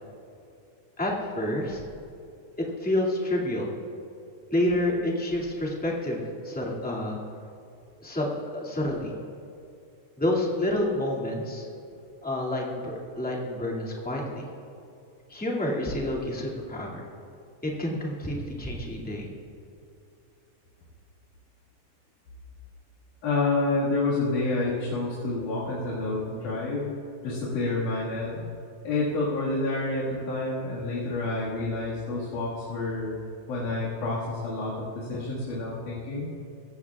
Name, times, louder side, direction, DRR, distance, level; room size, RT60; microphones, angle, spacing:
voice 1, 1.0-1.8 2.8-3.7 4.5-7.2 8.0-9.1 10.2-11.7 12.2-14.5 15.3-17.0 17.6-19.2, left 1 dB, 5° left, -4 dB, 1.6 m, -28 dB
voice 2, 23.2-26.9 27.2-28.5 28.8-33.2 33.5-36.3, left 2 dB, 80° left, -7 dB, 3.4 m, -28 dB
22.0 x 16.5 x 2.4 m, 2.6 s
omnidirectional pair, 3.6 m